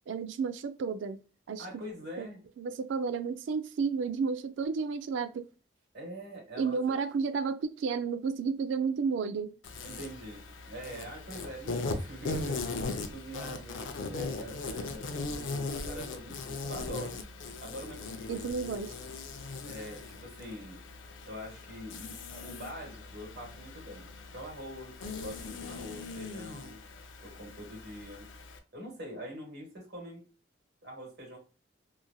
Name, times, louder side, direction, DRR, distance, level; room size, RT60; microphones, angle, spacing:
voice 1, 0.1-1.2 1.5-1.7 2.2-2.3 2.6-5.5 6.6-9.5 18.3-18.9, right 5 dB, 80° right, 0.3 m, -32 dB
voice 2, 1.6-2.4 5.9-6.8 9.8-17.2 17.6-18.5 19.6-20.8 21.3-26.8 27.2-28.3 28.7-30.2 30.8-31.4, equal, 60° right, 1.3 m, -44 dB
Insect, 9.6-28.6, left 3 dB, 90° left, 0.5 m, -39 dB
3.0 x 2.5 x 2.3 m
head